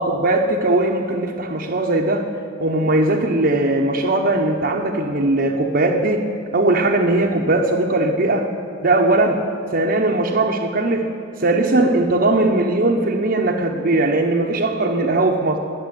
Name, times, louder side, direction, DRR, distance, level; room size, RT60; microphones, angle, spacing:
voice 1, 0.0-2.3 2.6-8.5 8.8-9.5 9.7-15.6, right 2 dB, 45° right, 0 dB, 0.8 m, -19 dB
19.5 x 7.1 x 9.8 m, 2.7 s
head